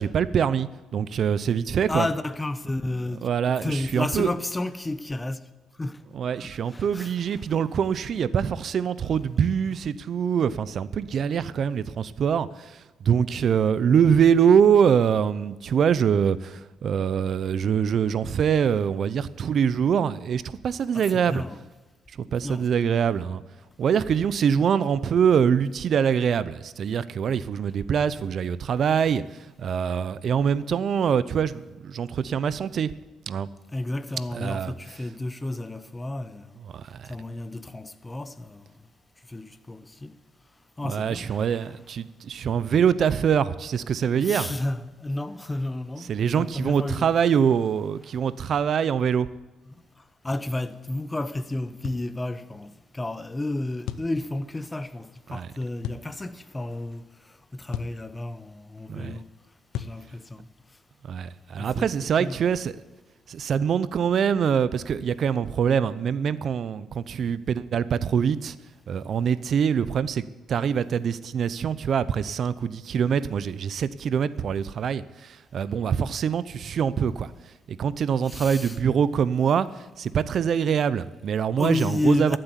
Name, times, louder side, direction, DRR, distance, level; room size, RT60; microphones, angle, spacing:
voice 1, 0.0-2.1 3.2-4.3 6.1-21.4 22.2-23.4 23.8-29.2 29.6-32.9 33.3-33.5 34.3-34.7 36.7-37.1 40.8-44.5 46.1-49.3 55.3-55.5 58.9-59.2 61.1-62.8 63.3-68.5 68.9-77.3 77.7-79.7 80.0-82.4, right 7 dB, 60° right, 0.7 m, -24 dB
voice 2, 1.9-3.3 3.6-5.4 5.8-6.0 6.3-7.4 7.8-8.1 20.9-21.6 22.4-23.1 33.7-36.5 37.1-38.7 39.3-40.1 40.8-41.7 44.1-47.1 49.7-49.8 50.2-59.3 59.8-60.5 61.6-62.4 74.4-74.5 78.2-78.8 81.6-82.4, left 2 dB, 15° left, 0.9 m, -32 dB
sound 1, 51.8-52.1 53.9-54.1 55.8-56.1 57.7-58.0 59.7-60.0, left 10 dB, 90° left, 0.6 m, -34 dB
13.5 x 7.7 x 9.7 m
cardioid pair, 90°, 0 cm